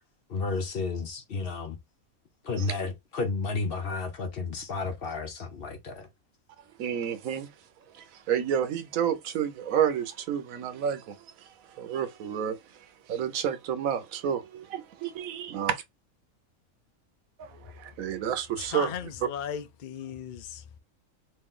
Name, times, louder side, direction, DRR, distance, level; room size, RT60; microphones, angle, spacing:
voice 1, 0.3-1.8 2.4-6.1, left 3 dB, 50° left, 0.8 m, -32 dB
voice 2, 6.8-7.5 8.0-11.2 11.8-12.6 13.1-15.8 17.4-18.9, right 9 dB, 75° right, 1.2 m, -30 dB
voice 3, 18.5-20.8, left 8 dB, 75° left, 0.4 m, -37 dB
3.2 x 2.8 x 3.7 m
omnidirectional pair, 1.5 m